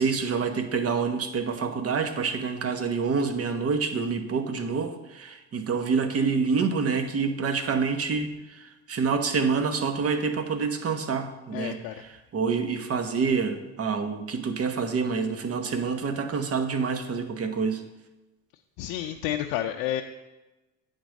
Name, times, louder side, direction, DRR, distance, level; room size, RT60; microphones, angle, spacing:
voice 1, 0.0-17.8, right 5 dB, 40° right, 7 dB, 1.0 m, -27 dB
voice 2, 11.5-12.0 18.8-20.0, left 12 dB, 85° left, 4 dB, 0.6 m, -30 dB
9.1 x 3.7 x 6.3 m, 1.0 s
supercardioid pair, 90°, 36 cm